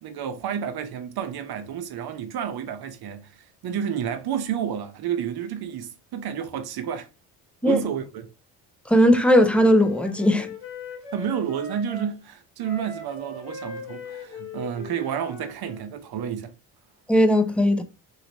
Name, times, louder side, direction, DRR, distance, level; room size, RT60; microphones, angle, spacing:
voice 1, 0.0-7.1 7.6-8.3 11.1-16.5, right 8 dB, 50° right, 0.8 m, -30 dB
voice 2, 8.9-10.5 17.1-17.8, equal, 5° left, 0.4 m, -18 dB
Wind instrument woodwind instrument, 9.0-12.1 12.6-15.9, left 3 dB, 75° left, 1.4 m, -40 dB
3.0 x 2.8 x 2.8 m
hypercardioid pair, 55°, 48 cm